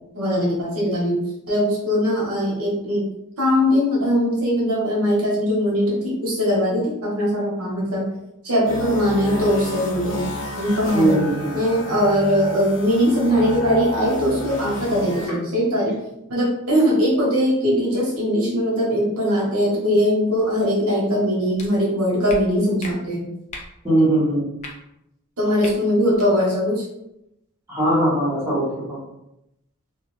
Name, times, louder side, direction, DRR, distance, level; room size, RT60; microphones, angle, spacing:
voice 1, 0.1-3.1 3.4-8.1 8.4-10.2 10.6-11.2 11.5-15.9 16.3-23.3 25.4-26.8, equal, 80° right, -4 dB, 1.1 m, -21 dB
sound 1, 8.6-15.3, left 1 dB, 75° left, 0.7 m, -31 dB
voice 2, 10.9-11.5 23.8-24.4 27.7-29.0, right 1 dB, 10° right, -9 dB, 1.0 m, -20 dB
sound 2, 21.6-21.7 22.3-22.4 22.8-22.9 23.5-23.7 24.6-24.7 25.6-25.7 26.1-26.3, left 2 dB, 30° left, 0.4 m, -35 dB
2.4 x 2.4 x 3.1 m, 0.84 s
head